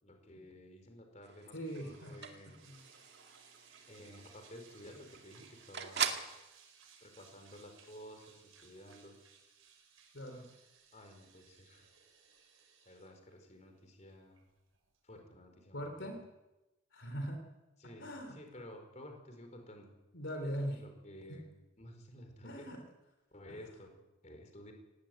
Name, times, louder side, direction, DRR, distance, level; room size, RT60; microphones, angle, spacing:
voice 1, 0.0-2.6 3.9-6.2 7.0-9.2 10.9-11.9 12.8-14.4 15.0-16.1 17.8-19.9 20.7-21.5 21.8-22.7 23.3-24.0 24.2-24.7, equal, 35° left, 5 dB, 4.6 m, -53 dB
sound 1, 1.2-6.4, right 7 dB, 55° right, 2.1 m, -42 dB
voice 2, 1.5-2.2 2.6-2.8 10.1-10.4 15.7-16.2 16.9-17.4 18.0-18.4 20.1-20.8 21.3-21.4 22.4-22.8, equal, 65° left, 5 dB, 3.5 m, -40 dB
sound 2, 1.6-15.2, right 6 dB, 90° right, 6.3 m, -63 dB
18.5 x 18.5 x 9.3 m, 1.0 s
head